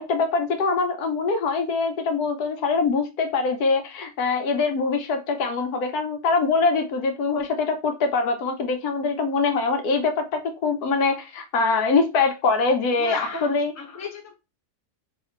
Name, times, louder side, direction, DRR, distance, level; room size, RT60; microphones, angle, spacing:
voice 1, 0.0-13.7, left 4 dB, 75° left, 1.2 m, -23 dB
voice 2, 13.0-13.5 13.8-14.3, left 4 dB, 15° left, 0.5 m, -33 dB
3.2 x 2.8 x 4.3 m
omnidirectional pair, 1.7 m